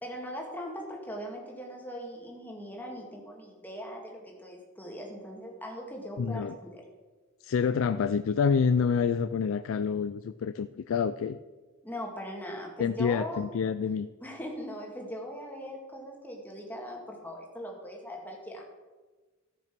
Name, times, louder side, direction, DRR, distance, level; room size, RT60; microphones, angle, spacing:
voice 1, 0.0-6.8 11.8-13.4 14.2-18.7, equal, 10° left, 0 dB, 2.0 m, -40 dB
voice 2, 6.2-6.6 7.4-11.4 12.8-14.1, left 6 dB, 80° left, 12 dB, 0.4 m, -27 dB
13.5 x 6.0 x 5.9 m, 1.3 s
head